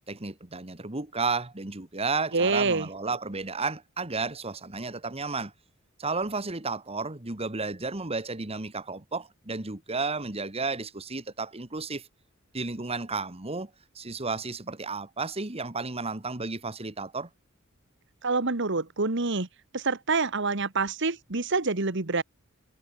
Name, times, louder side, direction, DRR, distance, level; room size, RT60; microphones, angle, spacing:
voice 1, 0.1-5.5 6.0-12.1 12.5-13.7 14.0-17.3, right 4 dB, 30° right, 1.9 m, -32 dB
voice 2, 2.3-2.9 18.2-19.5 19.7-22.2, right 3 dB, 60° right, 1.8 m, -26 dB
head